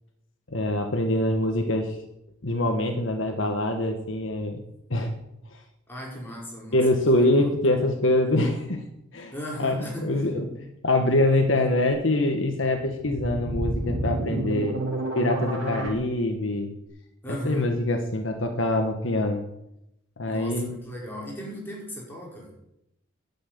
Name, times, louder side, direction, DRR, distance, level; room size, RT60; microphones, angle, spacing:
voice 1, 0.5-1.9 2.4-4.6 4.9-5.1 6.7-8.8 9.1-9.3 9.6-9.8 10.0-14.8 15.1-16.7 17.4-19.4 20.2-20.7, left 1 dB, 65° left, 5 dB, 1.5 m, -24 dB
voice 2, 5.9-7.5 9.3-10.3 17.2-17.7 20.3-22.6, equal, 10° left, -4 dB, 5.2 m, -36 dB
sound 1, 12.7-15.9, right 1 dB, 70° right, 3.9 m, -29 dB
11.0 x 7.7 x 9.4 m, 0.82 s
head